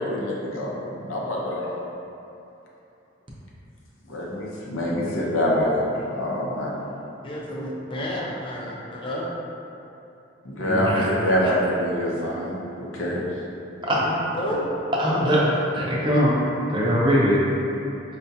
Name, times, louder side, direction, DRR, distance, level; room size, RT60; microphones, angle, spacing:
voice 1, 0.0-1.7 4.1-6.8 10.4-13.3, equal, 90° left, -3 dB, 0.6 m, -25 dB
voice 2, 7.2-9.2 14.3-14.6, left 1 dB, 25° left, -4 dB, 0.4 m, -31 dB
voice 3, 10.7-11.1 13.8-14.2 15.0-15.5 15.7-16.3 16.7-17.4, equal, 25° right, -6 dB, 0.5 m, -21 dB
4.8 x 2.2 x 2.7 m, 2.8 s
head